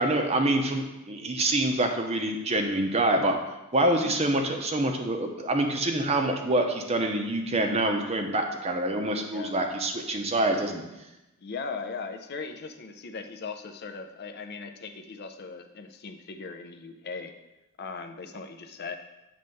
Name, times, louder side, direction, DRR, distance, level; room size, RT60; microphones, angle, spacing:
voice 1, 0.0-3.4 3.7-10.8, right 1 dB, 30° right, 4 dB, 0.6 m, -26 dB
voice 2, 11.4-17.4 17.8-18.9, left 4 dB, 45° left, 7 dB, 0.4 m, -39 dB
7.8 x 3.3 x 5.3 m, 0.98 s
head